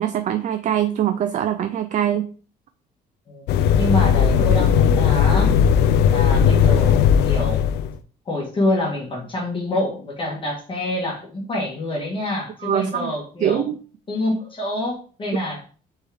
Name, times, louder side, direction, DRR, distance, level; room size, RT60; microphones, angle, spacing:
voice 1, 0.0-2.3 12.6-13.1 13.4-13.8, right 10 dB, 45° right, 8 dB, 0.4 m, -22 dB
sound 1, 3.5-8.0, left 7 dB, 75° left, 0.4 m, -17 dB
voice 2, 3.8-5.6 6.1-7.6 8.2-13.7 14.1-15.6, left 1 dB, 30° left, -2 dB, 1.5 m, -26 dB
4.2 x 3.6 x 3.5 m, 0.40 s
cardioid pair, 110°, 17 cm